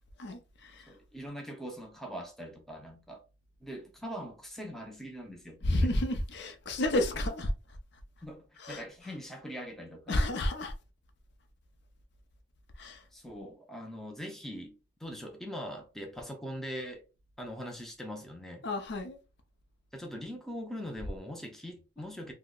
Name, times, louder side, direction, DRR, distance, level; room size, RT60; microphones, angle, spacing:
voice 1, 0.2-0.9 5.6-7.5 8.6-8.8 10.1-10.7 12.8-13.0 18.6-19.2, left 1 dB, 60° left, 0.5 m, -30 dB
voice 2, 0.9-3.2 3.6-6.0 8.2-10.3 13.1-17.0 17.4-18.7 19.9-22.3, equal, ahead, 0.5 m, -42 dB
2.7 x 2.1 x 3.7 m
head